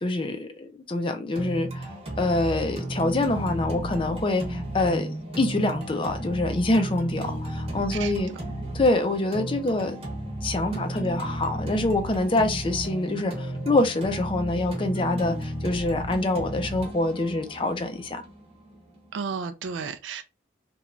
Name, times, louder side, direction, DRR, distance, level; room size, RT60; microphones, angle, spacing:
voice 1, 0.0-1.9 2.2-5.1 5.4-8.3 8.7-10.0 10.4-18.2, left 2 dB, 30° left, 0.4 m, -25 dB
sound 1, 1.4-19.3, right 1 dB, 30° right, 0.9 m, -34 dB
voice 2, 7.9-8.2 19.1-20.2, right 6 dB, 85° right, 0.3 m, -33 dB
3.0 x 2.2 x 2.5 m
head